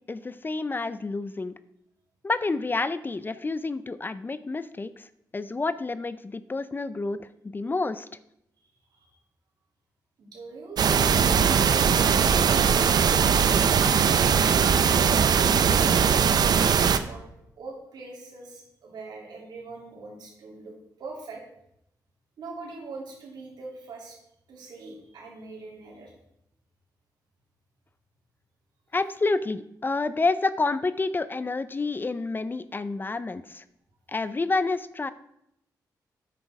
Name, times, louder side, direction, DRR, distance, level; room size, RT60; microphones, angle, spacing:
voice 1, 0.1-1.5 2.2-5.0 5.3-8.1 28.9-33.6 34.1-35.1, left 3 dB, 30° left, 14 dB, 0.5 m, -29 dB
voice 2, 10.2-11.3 11.6-13.6 14.9-17.3 17.6-21.4 22.4-24.2 24.5-26.1, right 3 dB, 90° right, -1 dB, 2.8 m, -43 dB
sound 1, 10.8-17.0, right 7 dB, 70° right, 0.5 m, -20 dB
9.0 x 6.1 x 4.8 m, 0.78 s
cardioid pair, 85°, 7 cm